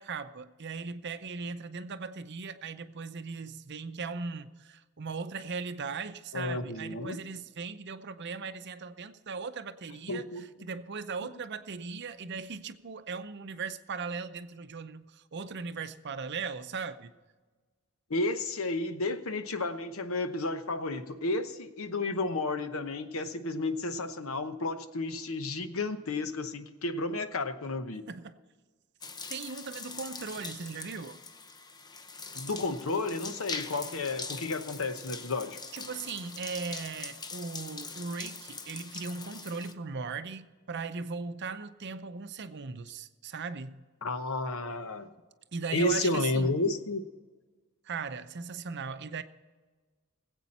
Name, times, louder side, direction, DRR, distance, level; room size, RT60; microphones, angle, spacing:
voice 1, 0.0-17.1 28.1-28.3 29.3-31.2 35.7-43.8 45.5-46.6 47.8-49.2, right 4 dB, 50° right, 0.6 m, -38 dB
voice 2, 6.3-7.2 10.1-10.5 18.1-28.0 32.3-35.6 44.0-45.1 45.7-47.1, left 2 dB, 70° left, 0.9 m, -32 dB
sound 1, 29.0-39.7, left 4 dB, 20° left, 0.6 m, -42 dB
20.0 x 8.3 x 4.2 m
head